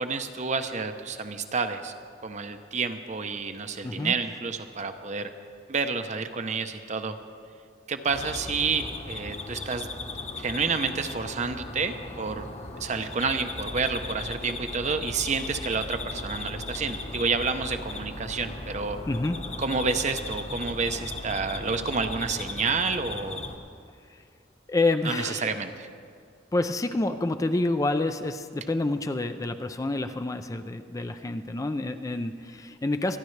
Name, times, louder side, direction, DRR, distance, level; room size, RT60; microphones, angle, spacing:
voice 1, 0.0-1.9 2.2-5.3 5.7-7.1 7.9-9.9 10.4-12.5 12.8-19.0 19.6-23.4 25.0-25.9, right 4 dB, 40° right, 8 dB, 0.7 m, -29 dB
voice 2, 3.8-4.1 19.1-19.4 24.1-24.2 24.7-25.6 26.5-33.2, left 2 dB, 20° left, 8 dB, 0.4 m, -28 dB
sound 1, 8.1-23.6, left 3 dB, 40° left, 1.2 m, -38 dB
sound 2, 13.6-22.4, equal, 75° left, 1.8 m, -43 dB
26.0 x 10.5 x 3.3 m, 2.2 s
head